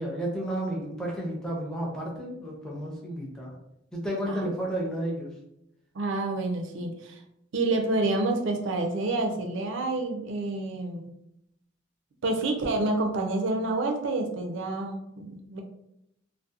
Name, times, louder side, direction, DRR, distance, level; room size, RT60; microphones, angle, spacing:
voice 1, 0.0-3.5 3.9-5.3, right 1 dB, 5° left, -3 dB, 0.5 m, -32 dB
voice 2, 5.9-7.2 7.5-11.1 12.2-15.6, right 2 dB, 65° right, 4 dB, 0.4 m, -28 dB
2.6 x 2.0 x 2.3 m, 0.80 s
head